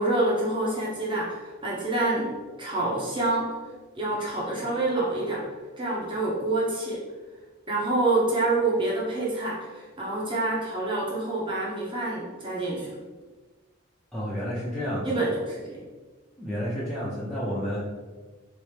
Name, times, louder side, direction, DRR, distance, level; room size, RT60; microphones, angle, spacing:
voice 1, 0.0-2.3 2.6-3.5 4.0-5.4 5.8-7.0 7.7-12.9 15.0-15.3 15.7-15.8, right 2 dB, 25° right, -5 dB, 0.9 m, -27 dB
voice 2, 14.1-15.2 16.4-17.8, equal, ahead, -10 dB, 0.5 m, -30 dB
3.3 x 3.0 x 3.3 m, 1.3 s
head